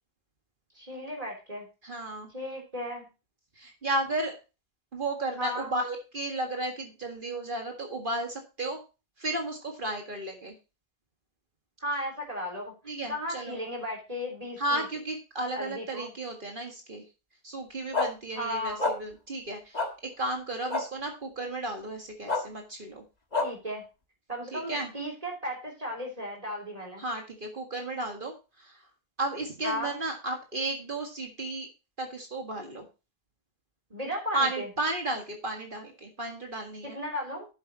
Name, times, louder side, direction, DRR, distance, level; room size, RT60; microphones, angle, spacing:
voice 1, 0.8-1.7 2.3-3.1 5.4-5.7 11.8-14.8 15.6-16.1 18.4-18.8 23.4-23.9 24.3-27.0 29.6-30.0 33.9-34.7 36.8-37.5, equal, 40° right, 0 dB, 3.5 m, -35 dB
voice 2, 1.8-2.3 3.6-4.3 4.9-8.8 9.2-10.5 12.9-13.6 14.6-17.0 17.4-23.0 24.5-24.9 27.0-28.8 29.2-31.7 32.0-32.9 34.3-37.0, right 2 dB, 55° right, 3 dB, 2.0 m, -33 dB
sound 1, 17.9-18.1 18.8-18.9 19.7-19.9 20.7-20.8 22.3-22.4 23.3-23.5, left 3 dB, 40° left, 1.7 m, -26 dB
11.0 x 8.1 x 3.0 m, 0.29 s
omnidirectional pair, 1.0 m